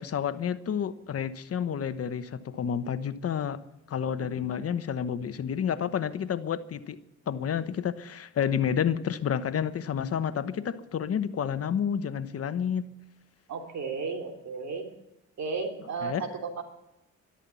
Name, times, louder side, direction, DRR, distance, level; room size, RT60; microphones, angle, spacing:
voice 1, 0.0-3.6 3.9-7.0 7.3-12.8 16.0-16.2, left 8 dB, 50° left, 12 dB, 1.1 m, -30 dB
voice 2, 4.2-4.6 13.5-14.9 15.4-16.6, right 4 dB, 65° right, 3 dB, 3.3 m, -34 dB
13.0 x 12.5 x 8.4 m, 0.86 s
cardioid pair, 90°, 30 cm